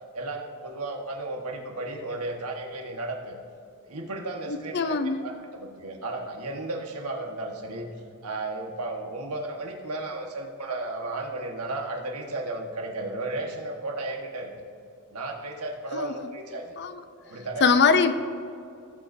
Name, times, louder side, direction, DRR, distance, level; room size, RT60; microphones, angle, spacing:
voice 1, 0.1-3.4 3.8-7.9 8.2-14.5 15.1-16.7 17.2-17.8, right 2 dB, 85° right, 2 dB, 1.5 m, -34 dB
voice 2, 4.7-5.2 15.9-16.1 16.8-17.0 17.6-18.1, left 5 dB, 50° left, 10 dB, 0.6 m, -21 dB
18.0 x 7.8 x 2.7 m, 2.4 s
head